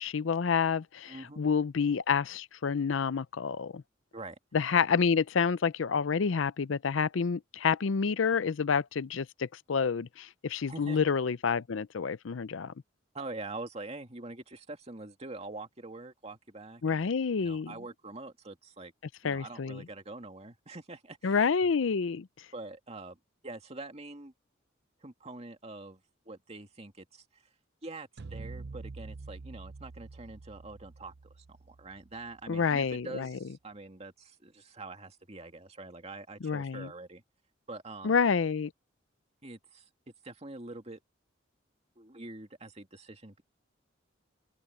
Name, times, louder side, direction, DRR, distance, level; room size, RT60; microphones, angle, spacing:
voice 1, 0.0-3.8 4.5-12.7 16.8-17.7 19.2-19.8 21.2-22.3 32.5-33.4 36.4-36.9 38.0-38.7, left 6 dB, 80° left, 0.5 m, -28 dB
voice 2, 1.1-1.4 4.1-4.4 10.7-11.0 13.1-18.9 19.2-21.4 22.5-23.2 23.4-24.3 25.0-26.0 26.3-27.4 27.8-37.2 37.7-38.2 39.4-39.9 40.2-41.0 42.0-43.4, right 2 dB, 35° right, 2.3 m, -45 dB
sound 1, 28.2-32.5, right 3 dB, 55° right, 0.6 m, -46 dB
head